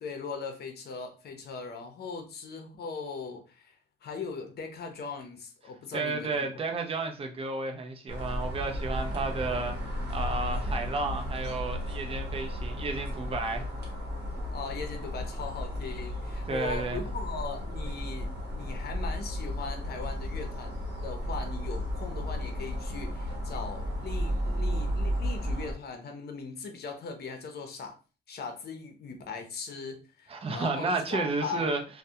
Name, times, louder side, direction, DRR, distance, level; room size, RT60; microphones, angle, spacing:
voice 1, 0.0-6.8 14.5-20.8 21.0-28.0 28.3-31.7, left 5 dB, 55° left, 0.7 m, -39 dB
voice 2, 5.9-9.8 10.1-13.7 16.5-17.0 30.3-31.8, right 3 dB, 30° right, 0.5 m, -32 dB
sound 1, 8.1-25.7, equal, 55° right, 0.9 m, -34 dB
2.2 x 2.1 x 2.7 m
cardioid pair, 90°, 20 cm